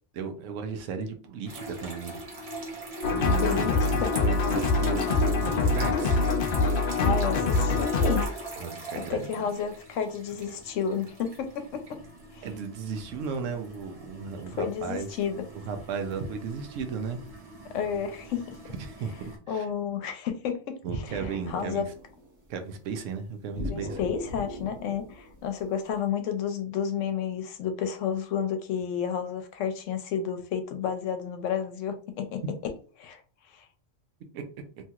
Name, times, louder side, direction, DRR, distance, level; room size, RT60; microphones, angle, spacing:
voice 1, 0.2-2.2 3.1-3.7 4.2-6.2 8.6-9.5 12.4-15.1 15.7-17.2 18.8-19.7 20.8-21.8 22.5-24.0 34.3-34.4, right 5 dB, 85° right, 6 dB, 1.0 m, -35 dB
sound 1, 1.5-19.4, right 2 dB, 35° right, 0.6 m, -41 dB
sound 2, 3.0-8.3, left 3 dB, 60° left, 0.6 m, -24 dB
voice 2, 3.2-4.1 7.0-8.3 8.9-12.0 12.3-12.5 14.6-15.4 17.7-18.6 19.5-20.8 21.0-21.8 23.6-32.4 33.0-33.2 33.5-33.6, left 7 dB, 80° left, 7 dB, 0.9 m, -31 dB
sound 3, 21.1-22.5 23.6-26.0, equal, 65° right, 1.4 m, -40 dB
2.9 x 2.8 x 2.3 m, 0.41 s
omnidirectional pair, 1.3 m